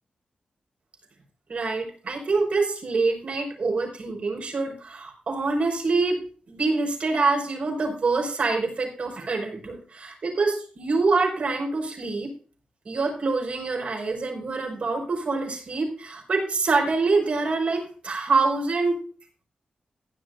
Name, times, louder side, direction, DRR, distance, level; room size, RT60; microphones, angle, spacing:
voice 1, 1.5-6.2 6.5-12.3 12.9-19.0, right 3 dB, 55° right, 1 dB, 5.6 m, -25 dB
16.0 x 11.0 x 2.6 m, 0.39 s
wide cardioid pair, 130°, 3 cm